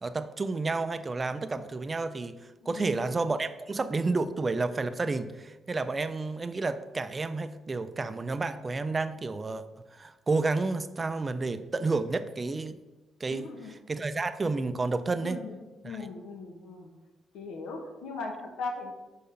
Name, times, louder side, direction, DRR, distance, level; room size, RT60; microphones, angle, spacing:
voice 1, 0.0-2.4 2.7-9.6 9.9-12.8 13.2-13.5 13.9-15.4 15.8-16.0, right 3 dB, 30° right, 11 dB, 0.4 m, -30 dB
voice 2, 2.6-3.0 13.3-13.7 15.2-15.6 15.8-16.9 17.3-18.9, left 3 dB, 85° left, 3 dB, 0.9 m, -38 dB
5.6 x 3.7 x 5.5 m, 1.1 s
cardioid pair, 90°, 0 cm